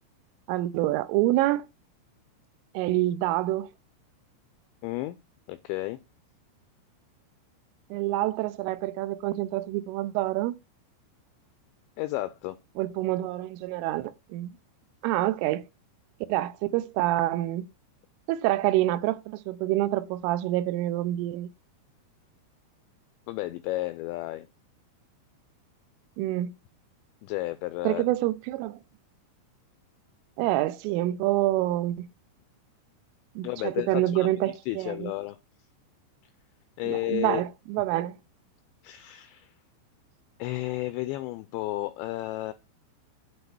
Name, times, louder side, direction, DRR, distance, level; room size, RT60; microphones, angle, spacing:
voice 1, 0.5-1.7 2.7-3.7 7.9-10.5 12.8-14.5 15.0-15.6 16.3-17.7 18.3-21.5 26.2-26.5 27.8-28.8 30.4-32.1 33.4-35.1 36.9-38.2, right 15 dB, 85° right, 3.2 m, -27 dB
voice 2, 4.8-5.2 5.5-6.0 12.0-12.6 23.3-24.5 27.2-28.1 33.4-34.3 34.7-35.4 36.8-37.4 38.8-39.5 40.4-42.5, left 18 dB, 85° left, 2.6 m, -32 dB
8.9 x 4.0 x 6.8 m
omnidirectional pair, 5.8 m